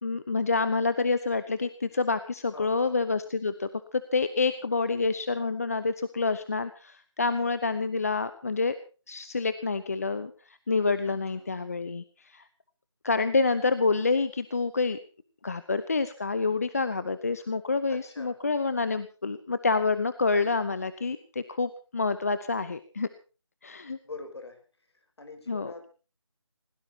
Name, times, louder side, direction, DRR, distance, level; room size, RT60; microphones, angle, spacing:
voice 1, 0.0-8.7 9.1-12.4 13.0-15.0 15.4-23.1 23.6-24.0 25.5-25.7, left 4 dB, 30° left, 13 dB, 0.8 m, -28 dB
voice 2, 2.5-3.0 11.1-11.5 17.4-17.5 17.9-18.4 24.0-24.6 25.2-25.9, left 3 dB, 60° left, 7 dB, 5.9 m, -44 dB
27.0 x 17.0 x 2.9 m, 0.36 s
figure-of-eight pair, 170°, 16 cm